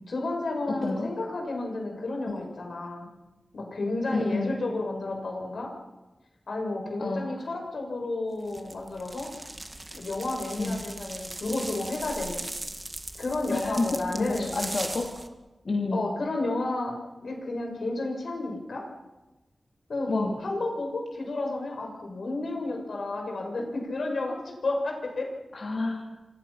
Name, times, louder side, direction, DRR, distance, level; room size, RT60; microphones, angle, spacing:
voice 1, 0.1-3.1 3.5-5.7 6.5-9.3 9.9-12.5 13.2-14.6 15.9-16.9 17.2-18.8 19.9-25.3, left 2 dB, 75° left, 1 dB, 6.9 m, -31 dB
voice 2, 0.7-1.1 2.3-2.5 4.1-4.5 7.0-7.3 10.6-10.8 13.5-15.1 15.6-16.0 20.1-20.4 25.5-26.1, left 2 dB, 60° left, 0 dB, 3.1 m, -29 dB
sound 1, 8.5-15.3, right 1 dB, 25° right, 2.1 m, -39 dB
27.5 x 26.5 x 5.9 m, 1.1 s
wide cardioid pair, 75°, 0 cm